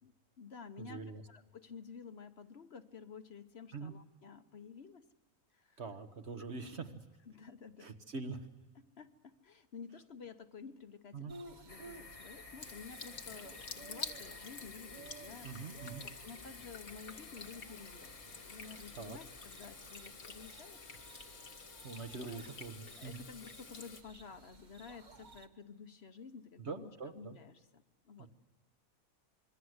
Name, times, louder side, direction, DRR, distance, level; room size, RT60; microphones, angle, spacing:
voice 1, 0.0-5.1 5.5-5.8 7.3-7.9 9.0-15.6 16.0-20.8 22.3-22.5 23.0-28.3, left 6 dB, 50° left, 10 dB, 1.1 m, -52 dB
voice 2, 0.8-1.2 3.7-3.9 5.8-7.0 7.8-8.5 11.1-11.3 15.4-16.0 19.0-19.2 21.8-23.2 26.6-27.4 28.2-28.3, right 4 dB, 50° right, 7 dB, 1.7 m, -44 dB
sound 1, 11.3-25.5, right 3 dB, 35° right, 1.1 m, -57 dB
sound 2, 11.7-23.6, left 3 dB, 25° left, 1.2 m, -56 dB
Water tap faucet / Sink (filling or washing), 12.6-24.0, left 4 dB, 80° left, 2.2 m, -49 dB
26.5 x 23.0 x 8.0 m, 1.2 s
omnidirectional pair, 1.5 m